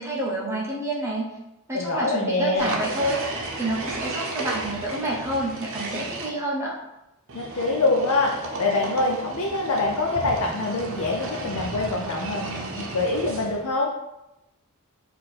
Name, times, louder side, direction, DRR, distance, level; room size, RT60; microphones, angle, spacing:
voice 1, 0.0-1.4 1.7-3.2 3.5-6.8, right 1 dB, 15° right, -4 dB, 0.7 m, -28 dB
voice 2, 1.7-2.7 7.3-13.9, left 2 dB, 75° left, -1 dB, 0.5 m, -25 dB
sound 1, 2.6-6.3 7.3-13.7, right 2 dB, 65° right, 0.7 m, -33 dB
4.3 x 2.6 x 4.1 m, 0.91 s
head